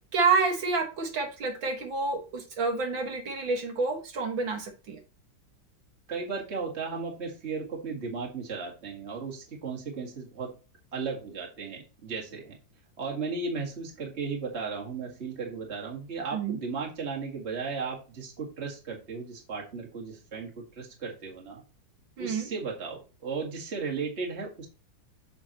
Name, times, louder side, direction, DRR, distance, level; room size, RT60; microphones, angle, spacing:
voice 1, 0.1-5.0 16.3-16.6 22.2-22.5, right 4 dB, 70° right, 2 dB, 2.5 m, -28 dB
voice 2, 6.1-10.5 10.9-12.6 13.0-21.6 22.2-24.7, right 4 dB, 35° right, -1 dB, 2.1 m, -35 dB
7.3 x 6.6 x 3.0 m, 0.33 s
omnidirectional pair, 2.1 m